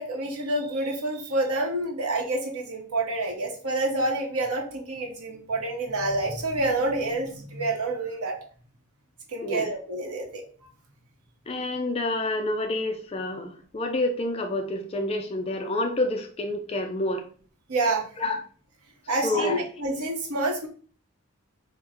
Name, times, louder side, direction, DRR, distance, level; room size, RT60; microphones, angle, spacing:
voice 1, 0.0-8.3 9.3-10.4 17.7-18.0 19.1-20.7, right 2 dB, 90° right, 1 dB, 1.0 m, -28 dB
voice 2, 11.5-17.2 18.2-18.4 19.2-19.6, left 2 dB, 25° left, 5 dB, 0.3 m, -28 dB
3.8 x 2.1 x 4.2 m, 0.44 s
head